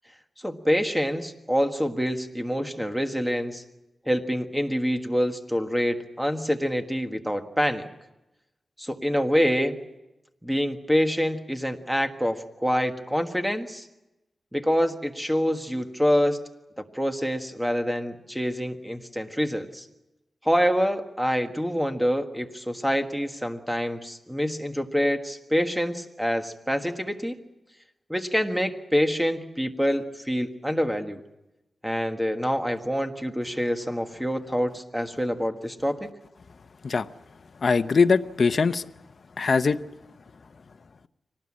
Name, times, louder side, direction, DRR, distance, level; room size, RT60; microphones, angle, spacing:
voice 1, 0.4-3.6 4.0-7.9 8.8-9.8 10.4-13.9 14.5-16.4 16.8-19.9 20.4-27.4 28.1-31.2 31.8-36.1, equal, 5° right, 6 dB, 1.5 m, -26 dB
voice 2, 37.6-38.9 39.4-39.8, left 4 dB, 50° left, 11 dB, 0.7 m, -21 dB
24.5 x 19.0 x 8.6 m, 0.97 s
wide cardioid pair, 130°, 0 cm